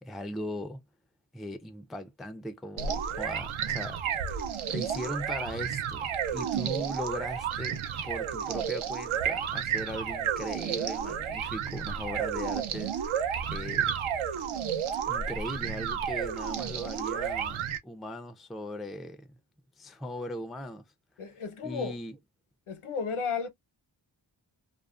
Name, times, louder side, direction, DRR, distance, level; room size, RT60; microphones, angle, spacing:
voice 1, 0.0-0.8 1.3-4.0 4.7-13.0 13.5-14.0 15.1-19.3 19.8-20.9 21.6-22.2, left 1 dB, ahead, 0.3 m, -39 dB
sound 1, 2.8-17.8, right 8 dB, 80° right, 0.6 m, -32 dB
voice 2, 21.2-22.0 22.7-23.5, left 5 dB, 80° left, 0.8 m, -33 dB
2.4 x 2.4 x 2.3 m
wide cardioid pair, 95°, 49 cm